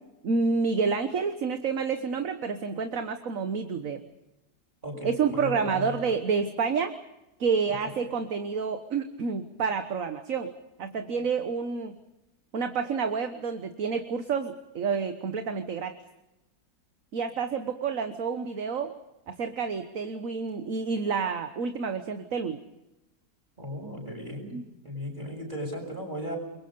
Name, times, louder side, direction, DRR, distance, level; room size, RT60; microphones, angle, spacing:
voice 1, 0.2-4.0 5.0-6.9 7.4-10.5 10.8-12.0 12.5-15.9 17.1-18.9 19.3-22.6 24.5-24.7, right 5 dB, 55° right, 8 dB, 1.6 m, -29 dB
voice 2, 4.8-5.9 7.8-7.9 23.6-24.6 24.8-26.4, equal, 30° right, 2 dB, 7.2 m, -36 dB
29.0 x 23.0 x 5.3 m, 0.95 s
omnidirectional pair, 1.7 m